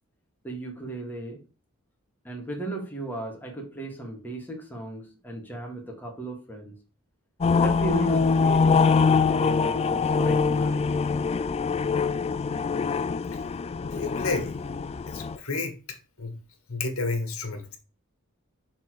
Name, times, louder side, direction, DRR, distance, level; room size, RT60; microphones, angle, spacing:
voice 1, 0.4-1.4 2.3-6.7 7.6-11.0, right 2 dB, 10° left, 2.0 m, -35 dB
sound 1, 7.4-15.4, left 5 dB, 30° left, 0.3 m, -24 dB
voice 2, 13.9-14.5 15.1-15.7 16.2-16.3 16.7-17.8, left 3 dB, 70° left, 1.8 m, -30 dB
6.6 x 4.2 x 4.8 m
head